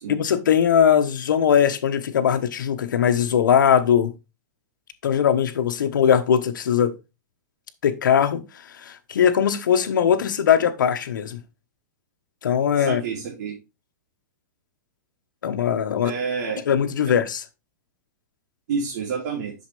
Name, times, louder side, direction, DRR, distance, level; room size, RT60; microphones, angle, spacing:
voice 1, 0.1-4.1 5.0-6.9 7.8-11.4 12.4-13.0 15.4-16.1 16.7-17.4, left 8 dB, 90° left, 1.3 m, -20 dB
voice 2, 12.8-13.6 16.0-16.6 18.7-19.5, right 5 dB, 60° right, 3.1 m, -28 dB
8.1 x 6.5 x 3.3 m
hypercardioid pair, 155°, 10 cm